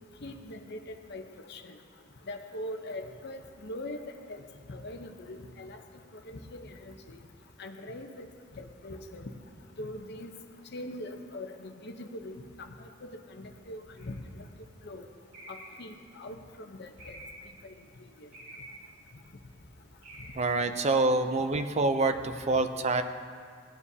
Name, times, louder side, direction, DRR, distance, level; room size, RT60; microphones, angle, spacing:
voice 1, 0.2-1.2 1.5-1.8 2.3-4.4 4.7-5.8 6.3-7.2 7.6-8.3 8.6-9.3 9.8-10.3 10.7-14.5 14.8-15.1 15.5-17.2 17.6-17.7 18.2-18.3, left 1 dB, 60° left, 5 dB, 0.8 m, -42 dB
sound 1, 14.0-14.3 15.3-16.0 17.0-17.6 18.3-18.9 20.0-20.5 21.7-21.8, right 1 dB, 65° right, 3.3 m, -48 dB
voice 2, 20.3-23.0, right 3 dB, 35° right, 8 dB, 0.5 m, -26 dB
17.5 x 9.6 x 2.8 m, 2.1 s
head